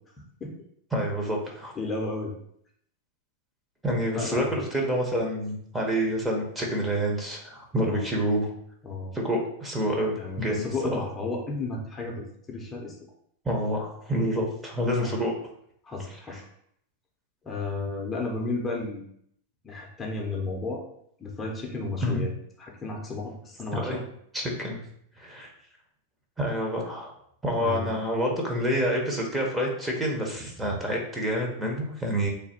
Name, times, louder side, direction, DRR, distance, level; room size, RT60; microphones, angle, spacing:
voice 1, 0.9-1.7 3.8-8.5 9.1-11.1 13.4-15.3 16.3-16.4 22.0-22.2 23.7-24.0 24.3-24.8 25.2-25.5 26.4-27.1 27.4-32.3, equal, 10° right, 0 dB, 0.8 m, -28 dB
voice 2, 1.8-2.3 4.1-4.6 7.8-8.0 8.8-9.1 10.2-12.9 15.0-15.1 15.8-16.4 17.4-19.0 19.6-20.8 21.2-22.3 22.6-24.0 27.6-27.9, left 3 dB, 20° left, 0 dB, 0.7 m, -33 dB
3.3 x 2.2 x 4.2 m, 0.69 s
hypercardioid pair, 120°, 0 cm